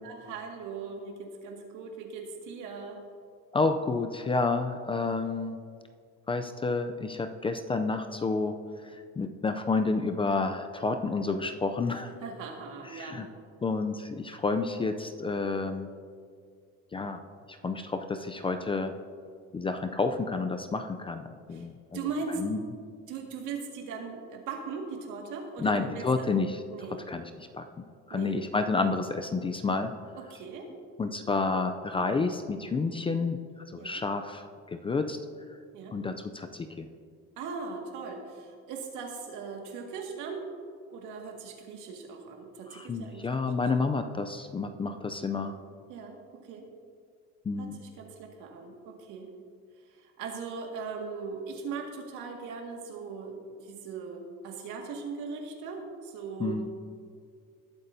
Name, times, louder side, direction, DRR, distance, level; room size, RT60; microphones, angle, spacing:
voice 1, 0.0-3.0 12.2-13.3 21.5-21.7 21.9-22.4 23.1-26.0 26.7-27.0 28.1-28.4 30.2-30.7 33.8-34.0 35.7-36.0 37.4-40.4 40.9-43.5 45.9-46.7 47.6-49.3 49.9-56.7, right 5 dB, 75° right, 1 dB, 2.0 m, -39 dB
voice 2, 3.5-5.6 6.3-8.6 9.2-12.1 12.9-13.3 13.6-15.9 16.9-17.2 17.6-18.9 19.5-22.0 22.4-22.6 25.6-26.6 27.1-27.6 28.1-29.9 31.0-33.4 33.7-35.2 35.9-36.9 42.7-45.5 47.5-47.8 56.4-56.7, left 3 dB, 15° left, 7 dB, 0.4 m, -30 dB
19.5 x 8.1 x 2.7 m, 2.1 s
cardioid pair, 135°, 31 cm